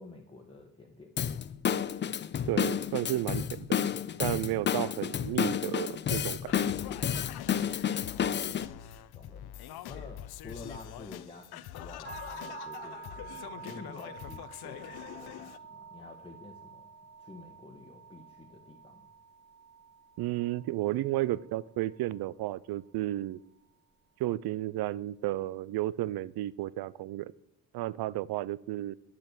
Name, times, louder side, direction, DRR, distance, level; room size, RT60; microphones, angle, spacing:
voice 1, 0.0-1.5 8.1-8.8 9.1-9.5 9.9-16.9 17.2-19.1, left 2 dB, 15° left, 0 dB, 1.3 m, -50 dB
Drum kit / Drum, 1.2-8.7, left 8 dB, 30° left, 0.4 m, -31 dB
voice 2, 2.5-3.7 4.2-6.5 20.2-23.4 24.2-27.3 27.7-28.9, right 15 dB, 75° right, 21 dB, 0.5 m, -32 dB
Singing, 6.5-15.6, left 11 dB, 80° left, 0.7 m, -44 dB
sound 1, 12.0-22.1, right 5 dB, 30° right, 1.3 m, -48 dB
9.7 x 7.6 x 8.2 m, 0.82 s
cardioid pair, 135°, 37 cm